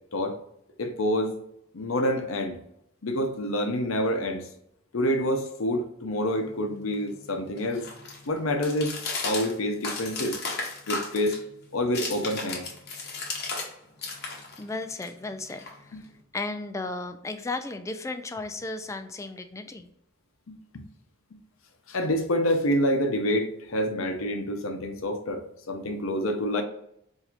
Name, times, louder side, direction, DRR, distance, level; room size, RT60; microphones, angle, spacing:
voice 1, 0.8-1.4 1.7-2.6 3.0-4.5 4.9-7.9 8.3-9.0 9.2-10.4 10.9-11.4 11.7-12.7 15.9-16.0 20.5-20.8 21.9-26.6, equal, 85° left, 6 dB, 0.7 m, -27 dB
sound 1, 6.3-13.7 14.0-16.2, left 4 dB, 55° left, 0.9 m, -36 dB
voice 2, 14.6-16.0 16.3-19.9, left 3 dB, 15° left, 8 dB, 0.3 m, -35 dB
4.5 x 2.7 x 2.5 m, 0.76 s
head